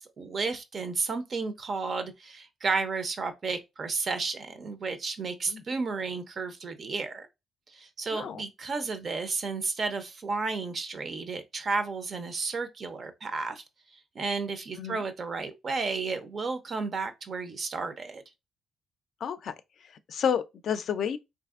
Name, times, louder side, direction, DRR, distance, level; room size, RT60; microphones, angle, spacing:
voice 1, 0.2-7.3 7.7-13.6 14.1-18.2, right 4 dB, 45° right, 0.5 m, -32 dB
voice 2, 8.1-8.4 14.8-15.0 19.2-21.2, left 8 dB, 65° left, 0.3 m, -31 dB
3.3 x 2.5 x 2.4 m
cardioid pair, 90°, 0 cm